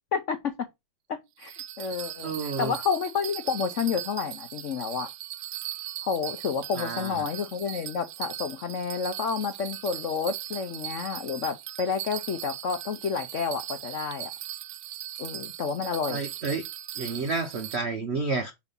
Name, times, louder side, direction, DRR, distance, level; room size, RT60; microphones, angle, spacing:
voice 1, 0.1-0.7 1.1-5.1 6.0-14.3 15.2-16.2, left 6 dB, 70° left, 0.7 m, -30 dB
Bell, 1.4-17.8, right 14 dB, 85° right, 1.4 m, -39 dB
voice 2, 2.2-2.7 6.7-7.3 16.1-16.6 17.0-18.5, right 4 dB, 65° right, 0.6 m, -30 dB
5.3 x 4.9 x 5.4 m
omnidirectional pair, 2.2 m